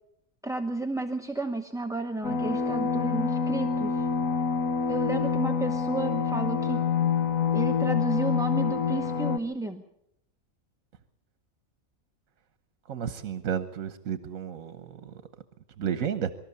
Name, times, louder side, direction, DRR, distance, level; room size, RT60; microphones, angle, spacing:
voice 1, 0.4-4.1 4.9-6.9 7.5-9.8, right 2 dB, 5° right, 4 dB, 0.8 m, -32 dB
sound 1, 2.2-9.4, left 6 dB, 80° left, 1.4 m, -27 dB
voice 2, 12.9-15.2 15.8-16.3, right 8 dB, 80° right, 11 dB, 1.4 m, -32 dB
24.5 x 13.5 x 8.5 m, 0.80 s
omnidirectional pair, 1.4 m